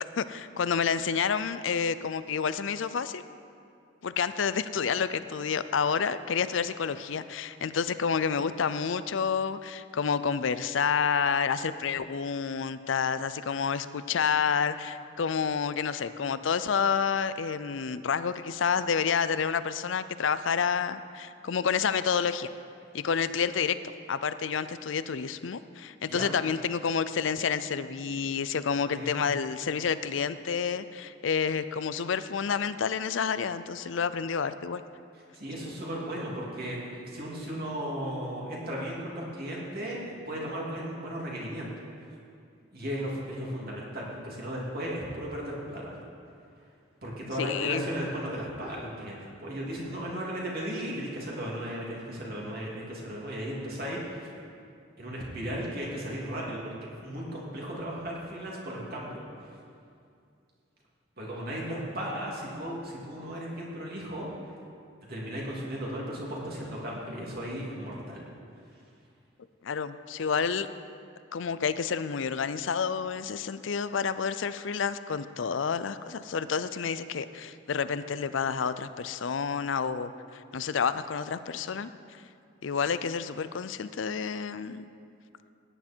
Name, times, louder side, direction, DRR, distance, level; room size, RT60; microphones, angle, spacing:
voice 1, 0.2-3.2 4.0-22.5 22.9-23.8 24.1-34.8 47.4-47.9 69.6-70.7 71.3-82.2 82.6-84.9, left 6 dB, 75° left, 13 dB, 0.5 m, -29 dB
voice 2, 28.8-29.3 35.3-41.8 42.7-46.0 47.0-54.3 55.0-59.2 61.2-64.3 65.1-68.2, equal, 50° right, -4 dB, 2.9 m, -36 dB
16.5 x 10.0 x 4.5 m, 2.4 s
head